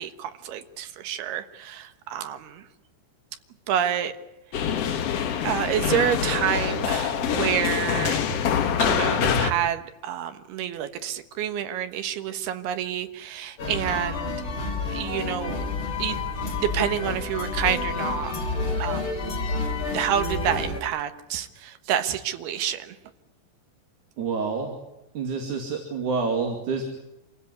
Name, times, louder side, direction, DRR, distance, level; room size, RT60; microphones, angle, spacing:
voice 1, 0.0-2.7 3.7-4.1 4.6-5.0 5.4-8.2 8.8-14.3 14.9-15.6 16.0-16.2 16.6-18.3 18.8-19.0 19.9-23.0, right 9 dB, 70° right, 9 dB, 3.2 m, -28 dB
sound 1, 4.5-9.5, left 7 dB, 70° left, 1.5 m, -25 dB
sound 2, 13.6-20.8, left 3 dB, 30° left, 3.8 m, -29 dB
voice 2, 24.2-24.7 25.2-26.8, right 4 dB, 50° right, 2 dB, 3.6 m, -27 dB
27.0 x 16.5 x 9.6 m, 0.93 s
omnidirectional pair, 4.9 m